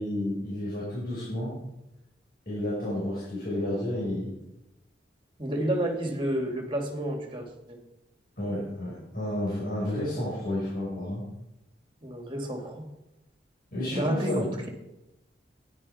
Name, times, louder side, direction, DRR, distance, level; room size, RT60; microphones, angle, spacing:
voice 1, 0.0-1.6 2.5-4.4 8.4-11.2 13.7-14.5, left 1 dB, 50° left, -7 dB, 5.6 m, -31 dB
voice 2, 5.4-7.8 12.0-12.8 13.9-14.7, right 1 dB, 25° right, 2 dB, 2.8 m, -30 dB
13.5 x 11.0 x 5.9 m, 0.93 s
head